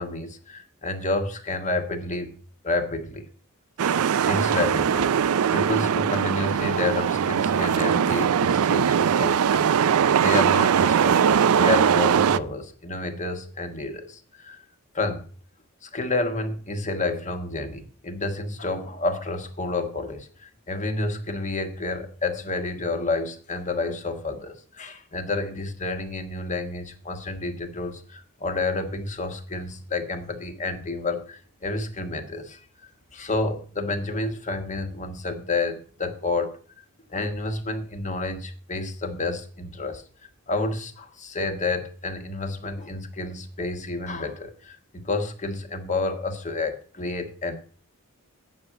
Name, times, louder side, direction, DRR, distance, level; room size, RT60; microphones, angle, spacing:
voice 1, 0.0-2.3 2.6-3.3 3.8-14.6 14.9-15.2 15.8-32.6 33.1-36.6 37.1-40.0 40.5-47.6, left 3 dB, 35° left, 7 dB, 1.2 m, -30 dB
sound 1, 3.8-12.4, right 8 dB, 65° right, 0.4 m, -21 dB
8.6 x 6.2 x 7.9 m, 0.43 s
head